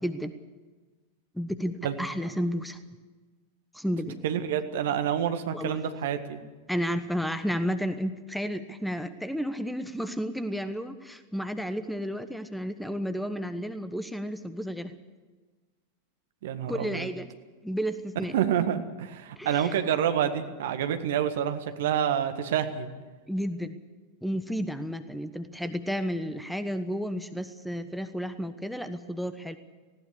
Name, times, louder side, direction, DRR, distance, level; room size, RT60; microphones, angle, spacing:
voice 1, 0.0-0.3 1.3-2.8 3.7-4.2 5.5-5.8 6.7-14.9 16.7-17.3 17.6-18.3 19.4-19.7 23.3-23.8 24.2-29.6, equal, ahead, 11 dB, 1.1 m, -32 dB
voice 2, 4.2-6.4 16.4-17.1 18.3-22.9, right 9 dB, 55° right, 8 dB, 1.8 m, -28 dB
19.0 x 17.0 x 8.4 m, 1.3 s
figure-of-eight pair, 90°, 0 cm